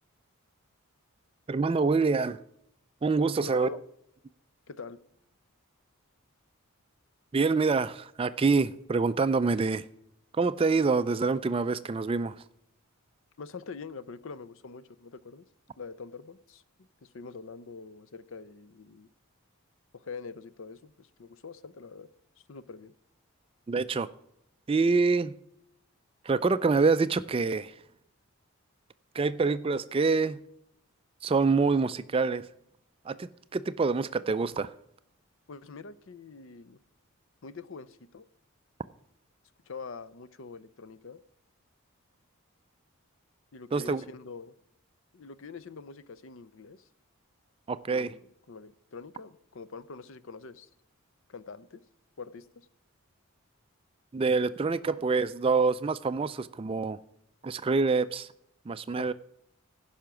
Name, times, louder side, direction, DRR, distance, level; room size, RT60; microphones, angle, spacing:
voice 1, 1.5-2.4 3.0-3.7 7.3-9.8 10.4-12.4 23.7-24.1 24.7-25.3 26.2-27.7 29.1-30.4 31.2-32.4 33.1-34.7 43.7-44.0 47.7-48.1 54.1-57.0 57.4-58.3 58.7-59.1, right 4 dB, 25° right, 0.3 m, -26 dB
voice 2, 3.4-3.8 4.7-5.0 13.4-15.4 15.8-19.1 19.9-22.1 22.5-22.9 35.5-36.8 37.4-38.3 39.7-41.2 43.5-44.6 45.1-46.9 47.9-50.7 51.3-51.8 52.2-52.7 59.0-59.1, left 4 dB, 60° left, 0.6 m, -44 dB
15.0 x 5.7 x 6.0 m
head